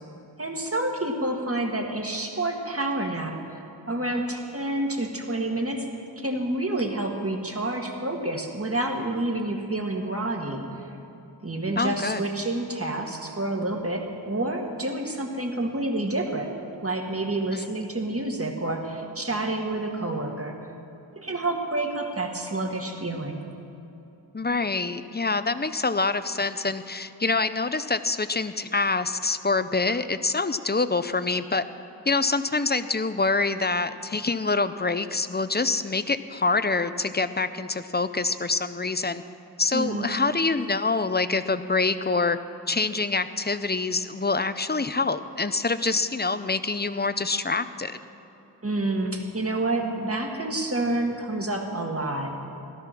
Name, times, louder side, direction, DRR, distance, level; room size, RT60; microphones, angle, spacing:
voice 1, 0.4-3.6 3.9-5.9 6.2-10.7 11.4-16.6 16.8-20.6 21.2-23.4 39.7-40.1 48.6-52.4, right 2 dB, 35° right, 2 dB, 1.9 m, -28 dB
voice 2, 11.8-12.2 17.5-17.6 24.3-31.6 32.1-39.2 39.6-42.4 42.7-48.0, left 3 dB, 25° left, 12 dB, 0.6 m, -26 dB
16.5 x 13.0 x 6.0 m, 2.9 s
wide cardioid pair, 55°, 43 cm